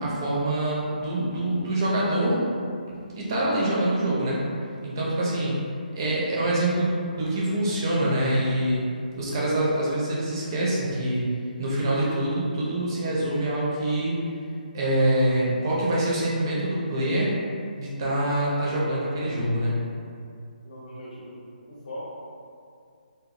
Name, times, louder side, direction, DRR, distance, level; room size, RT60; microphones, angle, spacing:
voice 1, 0.0-2.4 2.9-4.4 4.8-5.6 6.0-8.8 9.2-11.3 11.6-14.2 14.7-17.3 17.8-19.8, right 1 dB, 25° right, -6 dB, 0.5 m, -25 dB
voice 2, 20.6-21.4 21.7-22.0, equal, 50° left, -7 dB, 0.6 m, -40 dB
2.8 x 2.3 x 2.5 m, 2.3 s
hypercardioid pair, 175°, 5 cm